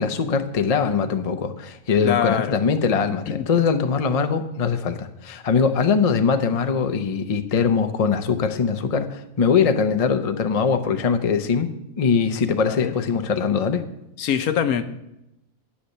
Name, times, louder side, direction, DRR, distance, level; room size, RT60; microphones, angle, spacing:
voice 1, 0.0-11.7 12.0-13.8, left 6 dB, 35° left, 7 dB, 0.6 m, -22 dB
voice 2, 2.0-2.6 3.3-3.5 12.7-12.9 14.2-14.8, left 8 dB, 70° left, 10 dB, 1.2 m, -23 dB
9.9 x 8.6 x 6.6 m, 0.87 s
omnidirectional pair, 1.6 m